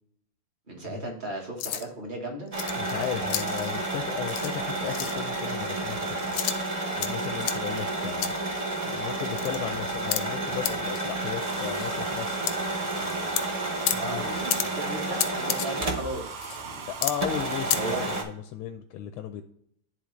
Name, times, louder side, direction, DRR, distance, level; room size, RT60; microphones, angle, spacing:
voice 1, 0.7-2.5 14.0-16.9 17.7-18.2, right 1 dB, 30° right, 1 dB, 1.1 m, -36 dB
sound 1, 1.6-1.8 2.5-3.7 4.3-4.5 4.9-5.2 6.2-7.1 7.4-7.6 8.2-8.3 8.9-9.0 9.2-9.6 10.1-10.2 10.6-10.7 11.0-11.1 11.4-11.9 12.5-12.6 12.9-13.4 13.9-14.0 14.5-14.6 15.2-15.7 16.1-16.6 17.0-17.1 17.4-17.8, left 11 dB, 70° left, 1.0 m, -30 dB
sound 2, 2.5-16.3 16.6-16.7 17.2-18.2, right 2 dB, 70° right, 0.3 m, -31 dB
voice 2, 2.8-6.4 7.0-8.3 8.8-12.4 13.9-14.3 17.0-19.4, left 10 dB, 90° left, 7 dB, 1.5 m, -35 dB
Domestic sounds home sounds, 11.4-18.2, right 5 dB, 85° right, 1.7 m, -40 dB
11.0 x 3.7 x 3.1 m, 0.70 s
omnidirectional pair, 2.3 m